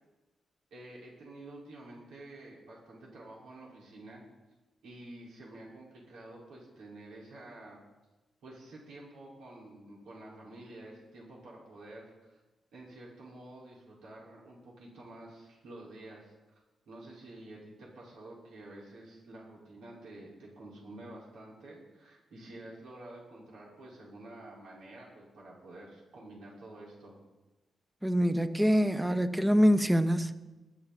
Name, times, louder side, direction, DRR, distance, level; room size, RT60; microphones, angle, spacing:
voice 1, 0.7-4.2 4.8-7.8 8.4-12.4 12.7-16.3 16.9-27.2, right 1 dB, 90° right, 5.4 m, -49 dB
voice 2, 28.0-30.3, equal, 10° right, 0.9 m, -25 dB
21.0 x 12.0 x 4.4 m
cardioid pair, 95°, 0 cm